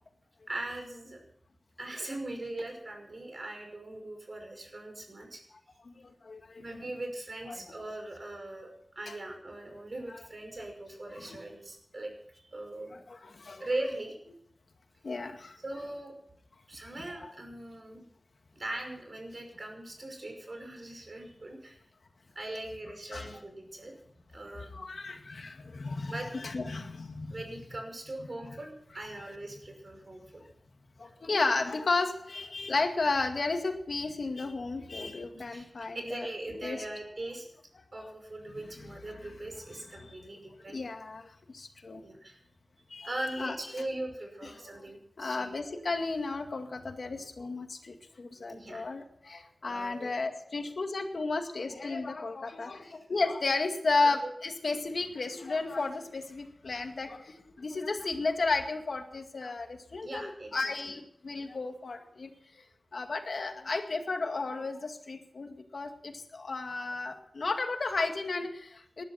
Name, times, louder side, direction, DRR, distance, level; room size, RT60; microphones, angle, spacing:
voice 1, 0.5-1.2 1.8-5.4 6.6-8.7 9.0-13.0 13.6-14.1 15.6-16.1 16.7-18.1 18.5-21.8 22.4-24.0 24.3-24.8 26.1-26.3 27.3-30.4 31.4-31.6 35.3-37.5 37.9-40.8 42.0-42.4 43.0-45.5 48.5-48.8 49.6-50.1 52.8-53.0 60.0-60.6 60.8-60.9, right 1 dB, 50° right, 3 dB, 5.6 m, -40 dB
voice 2, 5.8-6.8 7.5-7.6 9.1-9.2 11.1-11.4 12.9-13.7 15.0-15.6 17.2-17.3 23.1-23.4 24.6-27.4 31.0-36.9 38.5-39.3 39.7-40.2 40.7-42.0 42.9-43.1 43.4-43.6 44.6-44.8 45.2-62.6 62.9-69.0, left 3 dB, 75° left, 5 dB, 2.1 m, -34 dB
19.5 x 12.0 x 5.8 m, 0.71 s
wide cardioid pair, 85°, 0 cm